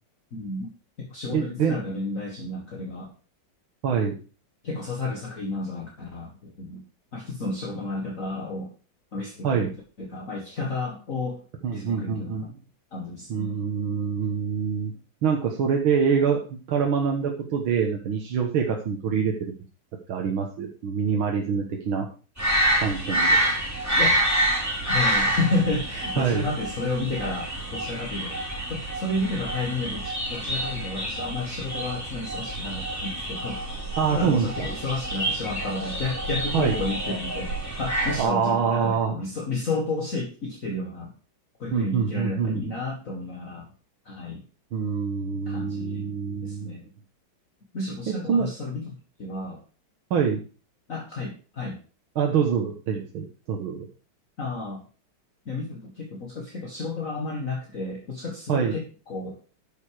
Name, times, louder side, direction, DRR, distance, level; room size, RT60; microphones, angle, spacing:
voice 1, 0.3-0.7 1.0-3.1 4.6-6.8 7.1-8.7 9.1-11.4 11.7-12.5 12.9-13.6 23.9-24.2 24.9-28.4 28.7-41.1 41.6-43.7 44.1-44.4 45.5-46.2 46.4-46.9 47.7-49.6 50.9-51.8 54.4-54.8 55.5-59.4, left 2 dB, 40° left, 0 dB, 2.1 m, -31 dB
voice 2, 1.3-1.8 3.8-4.2 9.4-9.7 11.6-12.5 13.3-14.9 15.2-19.5 20.1-22.1 22.8-23.4 26.2-26.5 34.0-34.7 36.5-36.8 38.2-39.2 41.7-42.7 44.7-46.8 48.1-48.5 50.1-50.4 52.2-53.9 58.5-58.8, right 6 dB, 80° right, 1 dB, 2.1 m, -25 dB
sound 1, 22.4-38.2, right 1 dB, 5° right, 3.4 m, -27 dB
11.0 x 7.0 x 4.8 m, 0.37 s
omnidirectional pair, 2.3 m